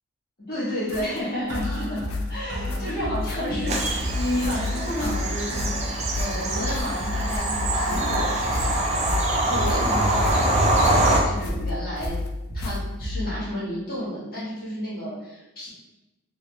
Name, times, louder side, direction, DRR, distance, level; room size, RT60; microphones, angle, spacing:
voice 1, 0.4-10.9 11.2-12.2 12.5-15.7, equal, 45° left, -9 dB, 1.4 m, -31 dB
sound 1, 0.9-13.1, left 1 dB, 90° left, 0.4 m, -38 dB
sound 2, 1.5-13.5, left 2 dB, 60° right, 0.7 m, -31 dB
Bird vocalization bird call bird song / Train, 3.7-11.2, right 1 dB, 30° right, 0.4 m, -24 dB
3.5 x 3.0 x 2.3 m, 1.0 s
head